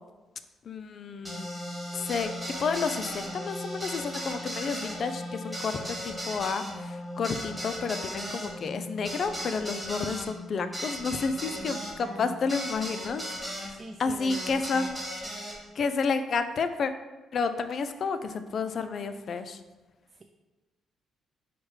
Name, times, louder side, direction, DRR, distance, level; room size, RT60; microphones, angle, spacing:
voice 1, 0.7-1.5 1.9-2.3 2.6-13.2 13.5-15.0 15.8-16.9 17.3-19.6, left 5 dB, 55° left, 10 dB, 0.3 m, -31 dB
sound 1, 1.2-13.7 14.3-15.6, equal, 5° right, 1.0 m, -37 dB
voice 2, 11.3-12.7 13.7-14.9, right 3 dB, 35° right, 2 dB, 0.3 m, -44 dB
4.7 x 2.2 x 4.7 m, 1.1 s
cardioid pair, 90°, 0 cm